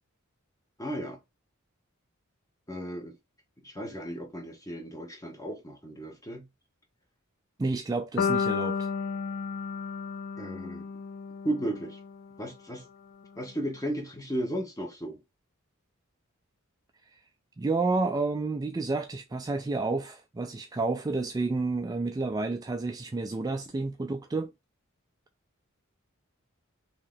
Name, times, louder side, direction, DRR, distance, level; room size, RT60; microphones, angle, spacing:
voice 1, 0.8-1.2 2.7-3.1 3.6-6.5 10.4-10.9 11.4-12.0 12.4-12.8 13.4-15.2, right 1 dB, 15° left, 1.0 m, -35 dB
voice 2, 7.6-8.9 17.6-24.5, right 3 dB, 20° right, 0.3 m, -30 dB
sound 1, 8.2-12.3, left 6 dB, 65° left, 0.4 m, -32 dB
3.0 x 2.8 x 3.8 m
head